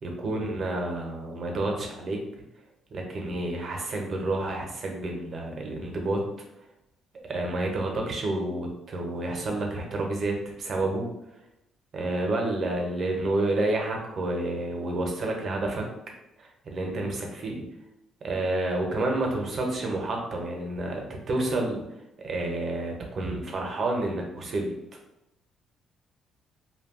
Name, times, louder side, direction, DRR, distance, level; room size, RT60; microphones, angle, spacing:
voice 1, 0.0-2.2 2.9-6.2 7.1-11.1 11.9-15.8 16.4-17.6 18.2-21.8 22.2-24.7, right 2 dB, 50° right, 1 dB, 0.7 m, -29 dB
2.2 x 2.2 x 3.6 m, 0.86 s
supercardioid pair, 75°, 0 cm